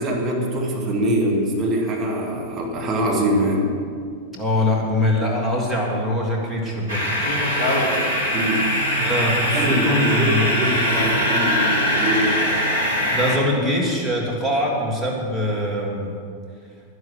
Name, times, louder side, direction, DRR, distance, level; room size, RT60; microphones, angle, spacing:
voice 1, 0.0-3.7 8.3-8.7 9.5-12.4, right 1 dB, 30° right, 0 dB, 2.5 m, -23 dB
voice 2, 4.3-7.0 9.0-10.5 13.1-16.1, left 1 dB, 10° left, -3 dB, 2.9 m, -23 dB
sound 1, 6.9-13.4, equal, 85° right, 2.1 m, -21 dB
11.0 x 11.0 x 6.4 m, 2.2 s
figure-of-eight pair, 90°, 0 cm